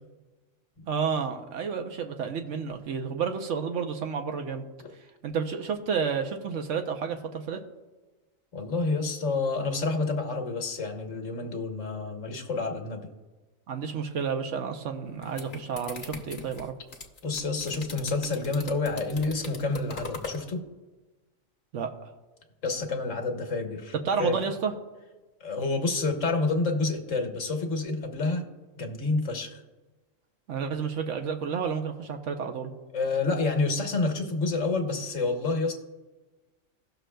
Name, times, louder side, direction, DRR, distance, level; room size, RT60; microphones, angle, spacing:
voice 1, 0.9-4.6 5.2-7.6 13.7-16.7 21.7-21.9 24.0-24.7 30.5-32.7, right 6 dB, 65° right, 5 dB, 1.0 m, -30 dB
voice 2, 8.5-13.1 17.2-20.6 22.6-23.9 24.2-24.4 25.4-28.4 28.8-29.6 32.9-35.7, left 3 dB, 70° left, 3 dB, 1.4 m, -28 dB
sound 1, 15.0-20.4, left 4 dB, 40° left, 1.0 m, -40 dB
17.0 x 6.2 x 2.2 m, 1.2 s
omnidirectional pair, 1.4 m